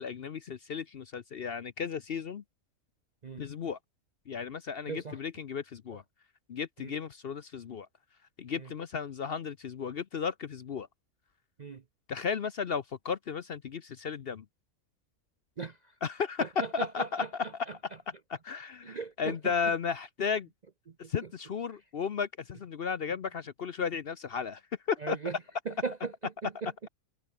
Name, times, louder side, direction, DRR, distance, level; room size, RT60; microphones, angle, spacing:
voice 1, 0.0-2.4 3.4-3.8 4.3-6.0 6.5-7.9 8.4-10.9 12.1-14.5 16.0-17.7 18.3-20.5 21.1-24.6 24.9-25.2, left 6 dB, 50° left, 0.8 m, -34 dB
voice 2, 4.9-5.2 6.8-6.9 8.6-8.7 11.6-11.8 15.6-15.9 16.4-17.8 18.8-19.5 21.0-21.1 25.0-25.4 25.7-26.7, right 4 dB, 45° right, 0.6 m, -38 dB
omnidirectional pair, 1.5 m